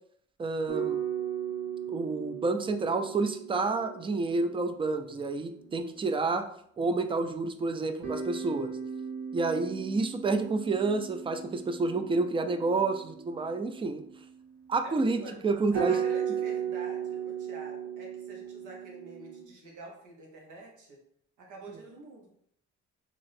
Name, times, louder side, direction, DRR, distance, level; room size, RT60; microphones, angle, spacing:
voice 1, 0.4-1.0 1.9-6.5 6.8-8.7 9.3-14.0 14.7-15.9, right 3 dB, 20° right, 8 dB, 0.3 m, -29 dB
sound 1, 0.7-6.0 8.0-14.6 15.4-15.5 15.7-19.5, right 8 dB, 55° right, 1.3 m, -36 dB
voice 2, 14.8-15.4 15.7-21.0 21.4-22.3, right 2 dB, 80° right, 0 dB, 1.1 m, -47 dB
3.0 x 2.6 x 4.1 m, 0.68 s
cardioid pair, 90°, 30 cm